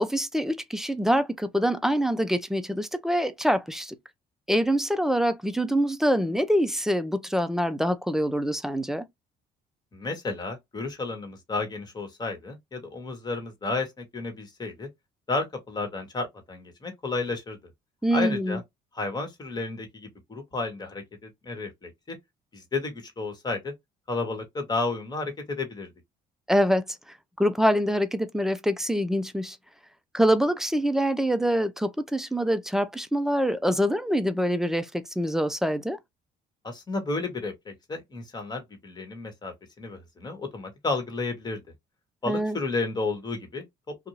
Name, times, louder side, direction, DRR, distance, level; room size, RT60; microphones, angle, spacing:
voice 1, 0.0-4.0 4.5-9.1 18.0-18.6 26.5-26.8 27.4-29.6 30.1-36.0 42.3-42.6, equal, 5° right, 0.4 m, -25 dB
voice 2, 9.9-14.9 15.3-17.6 18.1-18.6 18.9-22.2 22.5-23.7 24.1-25.9 36.6-41.6 42.2-43.6, left 3 dB, 25° left, 1.3 m, -32 dB
2.6 x 2.3 x 2.9 m
cardioid pair, 110°, 17 cm